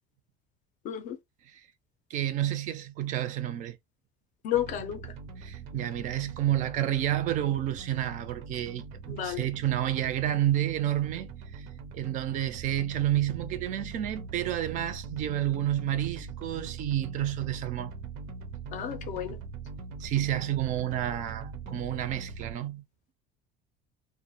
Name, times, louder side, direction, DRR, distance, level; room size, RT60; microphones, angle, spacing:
voice 1, 0.8-1.2 4.4-5.1 9.1-9.5 18.7-19.4, left 11 dB, 45° left, 0.4 m, -32 dB
voice 2, 2.1-3.8 5.4-11.7 11.9-17.9 20.0-22.8, right 12 dB, 45° right, 0.4 m, -30 dB
sound 1, 4.5-22.5, right 5 dB, 90° right, 0.7 m, -42 dB
2.3 x 2.1 x 2.6 m
cardioid pair, 170°, 18 cm